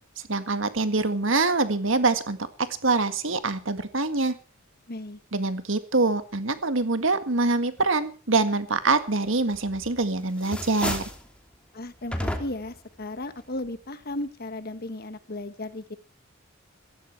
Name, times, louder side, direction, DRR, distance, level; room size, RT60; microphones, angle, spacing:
voice 1, 0.3-4.3 5.3-11.0, right 3 dB, 70° right, 10 dB, 1.8 m, -25 dB
voice 2, 4.9-5.2 11.7-16.0, left 1 dB, 50° left, 11 dB, 1.5 m, -35 dB
sound 1, 9.5-10.0 10.3-11.3 12.1-12.8, left 1 dB, 5° left, 2.9 m, -32 dB
16.0 x 15.5 x 4.6 m, 0.38 s
head